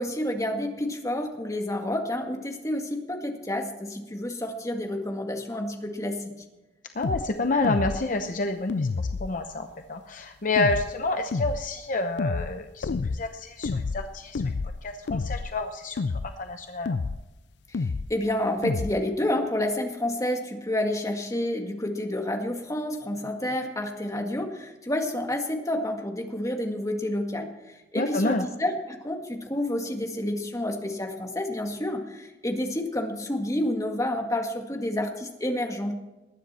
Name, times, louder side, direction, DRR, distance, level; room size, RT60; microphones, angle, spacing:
voice 1, 0.0-6.4 17.7-35.9, left 1 dB, 20° left, 3 dB, 1.9 m, -29 dB
voice 2, 6.9-14.5 14.8-16.0 16.4-17.0 28.0-28.5, left 2 dB, 50° left, 6 dB, 0.8 m, -29 dB
sound 1, 7.0-7.3 7.6-8.1 8.7-9.4 10.6-10.9 11.3-11.7 12.2-12.5 12.8-13.2 13.6-14.1 14.4-14.8 15.1-15.5 16.0-16.3 16.9-17.2 17.7-18.1 18.6-18.9, left 4 dB, 70° left, 0.5 m, -29 dB
20.0 x 10.0 x 4.3 m, 1.0 s
head